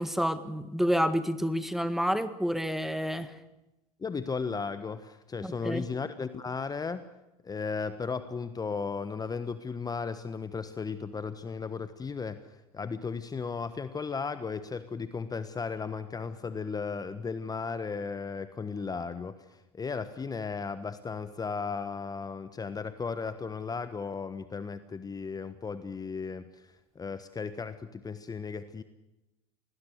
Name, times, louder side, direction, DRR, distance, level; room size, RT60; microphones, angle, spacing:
voice 1, 0.0-3.4 5.4-5.8, equal, ahead, 1.7 m, -29 dB
voice 2, 4.0-7.1 7.4-26.7 26.9-28.8, left 5 dB, 20° left, 1.3 m, -35 dB
26.0 x 19.5 x 6.7 m
hypercardioid pair, 80°, 19 cm